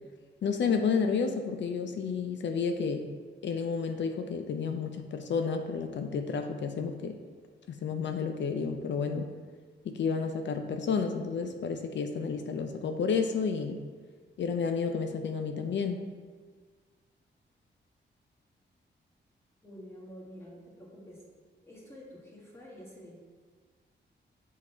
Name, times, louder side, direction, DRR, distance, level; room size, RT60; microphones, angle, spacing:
voice 1, 0.4-3.1 3.4-7.2 7.7-9.3 9.8-13.8 14.4-16.0, left 5 dB, 70° left, 6 dB, 0.6 m, -31 dB
voice 2, 19.6-21.2 21.6-23.2, equal, 15° left, -4 dB, 1.7 m, -48 dB
7.4 x 4.0 x 4.4 m, 1.5 s
wide cardioid pair, 125°, 19 cm